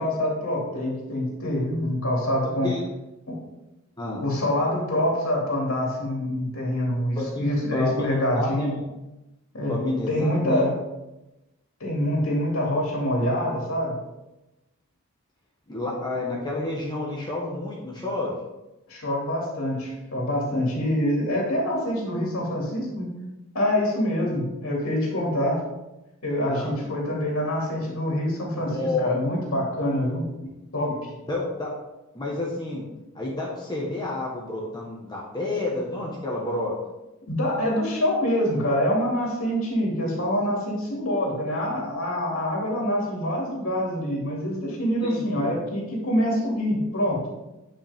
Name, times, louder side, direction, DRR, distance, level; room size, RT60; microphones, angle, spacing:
voice 1, 0.0-2.7 4.2-8.7 9.5-9.7 10.1-10.7 11.8-13.9 18.9-23.1 23.5-25.6 26.2-30.2 30.7-30.9 37.3-47.2, left 1 dB, 70° left, -3 dB, 2.8 m, -25 dB
voice 2, 7.7-8.1 8.3-8.9 9.7-10.6 15.7-18.3 26.5-26.8 28.6-29.2 30.9-31.0 31.3-31.7 32.1-32.8 33.1-36.7 45.0-45.5, left 2 dB, 20° left, -4 dB, 1.3 m, -29 dB
9.7 x 5.5 x 3.6 m, 0.98 s
head